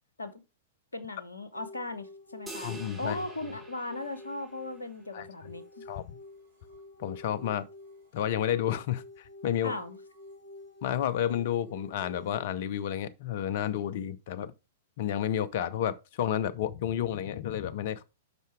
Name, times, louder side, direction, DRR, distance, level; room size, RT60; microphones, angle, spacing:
voice 1, 0.9-5.6 9.6-10.0, left 2 dB, 80° left, 1.1 m, -38 dB
sound 1, 1.5-12.4, left 2 dB, 65° right, 3.7 m, -49 dB
sound 2, 2.5-5.0, right 2 dB, 15° right, 2.8 m, -47 dB
voice 2, 2.6-3.2 5.1-5.3 5.9-6.0 7.0-7.7 8.1-9.7 10.8-14.5 15.0-18.0, left 10 dB, 55° left, 0.6 m, -31 dB
8.1 x 5.7 x 3.3 m
figure-of-eight pair, 105°, 0 cm